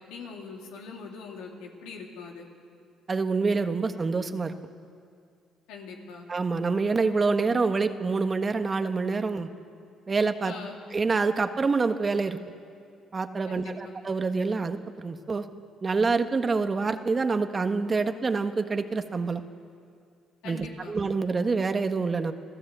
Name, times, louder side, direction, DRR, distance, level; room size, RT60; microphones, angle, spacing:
voice 1, 0.1-2.5 5.7-6.3 10.4-10.8 13.5-13.9 20.4-20.9, left 4 dB, 85° left, 0 dB, 3.3 m, -42 dB
voice 2, 3.1-4.5 6.3-9.5 10.1-10.5 10.9-12.4 13.1-15.5 15.8-19.4 20.4-22.3, right 4 dB, 35° right, 8 dB, 1.4 m, -26 dB
27.5 x 16.0 x 8.2 m, 2.3 s
supercardioid pair, 65°, 0 cm